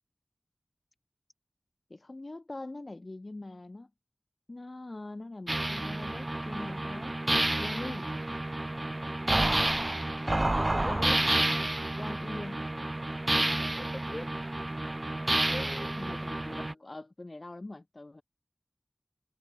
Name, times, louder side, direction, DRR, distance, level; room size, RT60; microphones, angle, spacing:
voice 1, 1.9-3.9 4.5-8.1 10.9-11.2 12.0-12.7 16.0-18.2, left 2 dB, 50° left, 1.0 m, -43 dB
sound 1, 5.5-16.7, right 1 dB, 35° right, 0.5 m, -30 dB
voice 2, 10.2-11.0 13.6-14.3 15.4-16.2, left 1 dB, 25° left, 4.4 m, -43 dB
wide cardioid pair, 55°, 0 cm